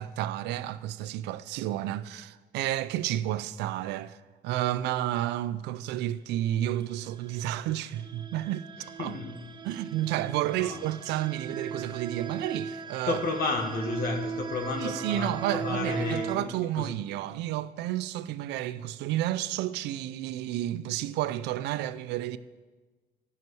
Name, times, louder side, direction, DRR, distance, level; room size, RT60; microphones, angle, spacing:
voice 1, 0.0-4.2 4.4-8.7 9.0-9.1 9.6-13.2 14.8-22.4, right 13 dB, 85° right, 0.5 m, -31 dB
sound 1, 7.3-16.4, right 6 dB, 30° right, 0.5 m, -38 dB
voice 2, 8.8-9.4 10.6-10.8 13.1-16.9, left 3 dB, 65° left, 1.6 m, -32 dB
12.5 x 5.9 x 7.8 m
cardioid pair, 110°, 17 cm